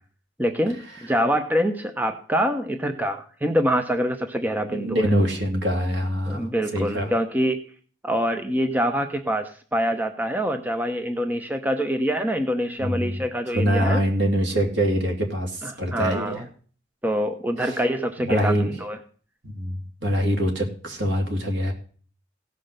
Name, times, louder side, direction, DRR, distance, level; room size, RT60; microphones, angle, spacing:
voice 1, 0.4-5.1 6.3-7.6 8.0-14.0 15.6-16.5 17.0-19.0, equal, 10° right, 6 dB, 0.7 m, -25 dB
voice 2, 4.7-7.1 12.8-13.2 13.5-16.4 17.6-17.8 18.2-18.7 19.4-19.7 20.0-21.7, equal, 70° right, 3 dB, 2.6 m, -24 dB
16.5 x 5.8 x 6.6 m, 0.43 s
head